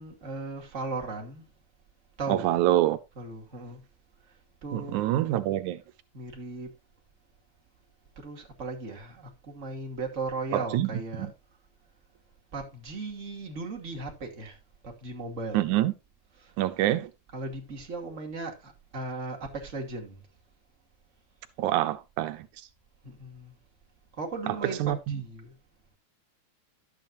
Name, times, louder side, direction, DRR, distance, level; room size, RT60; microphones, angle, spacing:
voice 1, 0.0-1.5 2.2-2.5 3.1-3.8 4.3-5.1 6.1-6.7 8.2-11.3 12.5-14.6 14.8-15.7 16.3-16.5 17.3-20.2 23.0-23.6 24.1-25.5, right 3 dB, 25° right, 2.5 m, -37 dB
voice 2, 2.3-3.0 4.7-5.8 10.5-10.9 11.2-11.3 15.5-15.9 16.6-17.1 21.6-22.5 24.8-25.2, right 14 dB, 85° right, 2.1 m, -26 dB
12.0 x 9.0 x 2.6 m
omnidirectional pair, 3.4 m